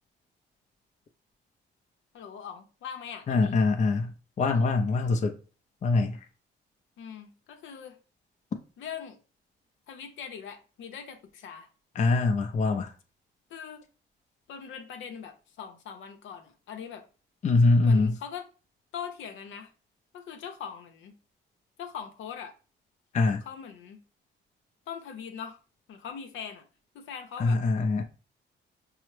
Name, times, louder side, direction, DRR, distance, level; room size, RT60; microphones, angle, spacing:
voice 1, 2.1-3.5 7.0-8.0 8.8-9.2 9.9-11.7 13.5-13.8 14.5-17.0 17.8-18.5 18.9-19.7 20.1-21.1 21.8-22.5 23.4-24.0 24.9-25.6 25.9-26.6 26.9-27.6, left 7 dB, 75° left, 0.7 m, -41 dB
voice 2, 3.3-5.4 5.8-6.2 12.0-12.9 17.4-18.2 23.1-23.4 27.4-28.0, left 3 dB, 35° left, 0.5 m, -24 dB
5.5 x 2.0 x 3.1 m
cardioid pair, 90°, 20 cm